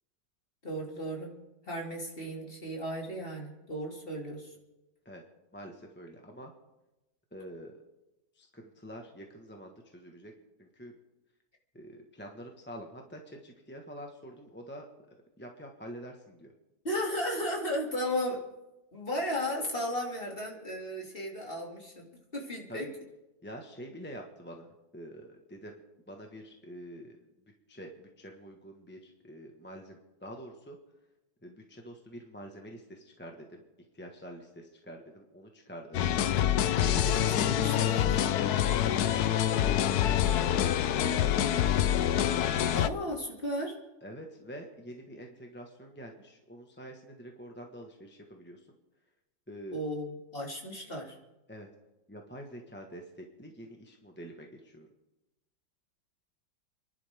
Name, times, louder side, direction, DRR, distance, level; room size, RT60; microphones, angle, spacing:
voice 1, 0.6-1.3 1.6-4.6 16.8-18.4 18.9-22.1 22.3-22.9 36.9-38.3 42.7-43.7 49.7-51.2, equal, 30° left, -1 dB, 2.8 m, -35 dB
voice 2, 5.5-6.5 7.3-7.8 8.3-10.3 10.6-10.9 11.7-16.5 22.7-22.9 23.4-27.2 27.7-30.8 31.4-33.6 33.9-36.0 36.8-37.2 39.6-39.7 40.1-41.8 44.0-48.7 49.5-49.8 51.5-51.7 52.1-54.9, equal, 5° left, 1 dB, 1.3 m, -46 dB
sound 1, 35.9-42.9, left 11 dB, 65° left, 1.1 m, -26 dB
29.5 x 11.5 x 3.6 m, 0.98 s
omnidirectional pair, 2.0 m